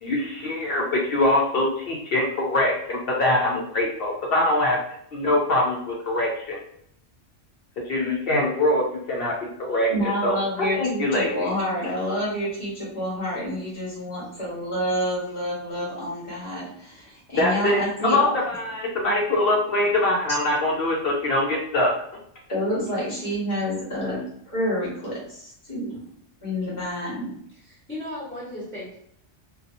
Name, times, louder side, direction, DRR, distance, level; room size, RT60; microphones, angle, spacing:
voice 1, 0.0-4.8 5.1-6.6 7.8-10.3 10.7-11.5 17.4-21.9, left 1 dB, 60° left, -1 dB, 0.7 m, -23 dB
voice 2, 9.9-18.3 22.5-24.2 24.5-26.0 26.4-27.3, equal, 40° left, -6 dB, 1.2 m, -28 dB
voice 3, 27.5-29.0, left 1 dB, 10° left, -8 dB, 1.1 m, -37 dB
2.6 x 2.3 x 2.5 m, 0.68 s
omnidirectional pair, 1.2 m